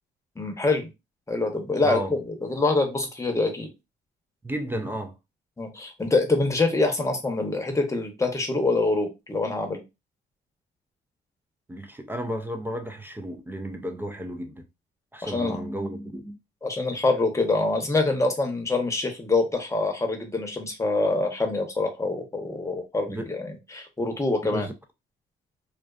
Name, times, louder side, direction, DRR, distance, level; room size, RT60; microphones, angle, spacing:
voice 1, 0.4-0.9 1.3-3.7 5.6-9.8 15.2-15.6 16.6-24.7, left 3 dB, 15° left, 0.7 m, -25 dB
voice 2, 1.8-2.1 4.4-5.1 11.7-14.6 15.1-16.4 23.1-23.3 24.4-24.7, equal, 10° right, 0.3 m, -33 dB
2.4 x 2.3 x 2.3 m
cardioid pair, 90°, 20 cm